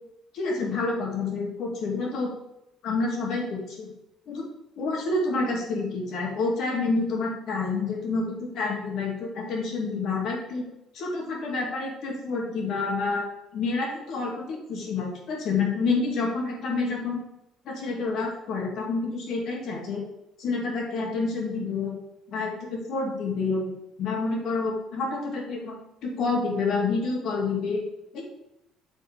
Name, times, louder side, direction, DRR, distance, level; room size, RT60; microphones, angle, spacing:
voice 1, 0.3-2.3 2.8-3.9 4.3-4.4 4.8-10.6 10.9-13.3 13.5-17.2 17.6-20.0 20.4-21.9 22.3-23.7 24.0-25.8 26.0-27.8 28.1-28.2, left 3 dB, 65° left, 0 dB, 2.4 m, -28 dB
7.3 x 3.8 x 5.8 m, 0.86 s
cardioid pair, 95°, 0 cm